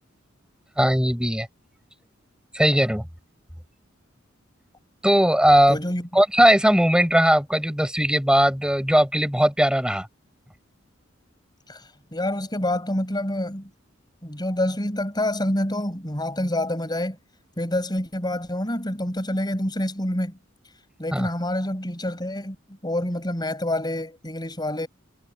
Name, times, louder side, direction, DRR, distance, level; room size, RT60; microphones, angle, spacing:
voice 1, 0.8-1.5 2.5-3.1 5.0-5.8 6.1-10.1 21.1-21.3, equal, 5° right, 5.2 m, -19 dB
voice 2, 5.7-6.1 11.7-13.7 14.2-17.2 17.6-20.4 21.0-22.6 22.8-24.9, left 1 dB, 20° left, 7.4 m, -27 dB
head